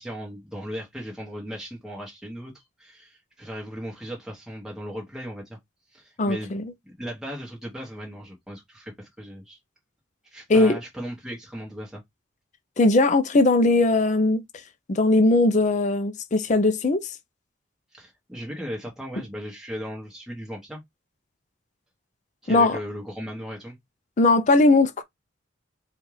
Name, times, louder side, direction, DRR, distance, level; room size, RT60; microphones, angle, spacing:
voice 1, 0.0-5.6 5.9-6.5 6.8-9.6 10.2-12.0 17.9-20.8 22.4-23.8, equal, 5° right, 1.1 m, -37 dB
voice 2, 6.2-6.6 10.5-10.8 12.8-14.4 14.9-17.1 22.5-22.8 24.2-25.0, left 2 dB, 40° left, 0.5 m, -19 dB
4.3 x 2.4 x 3.1 m
head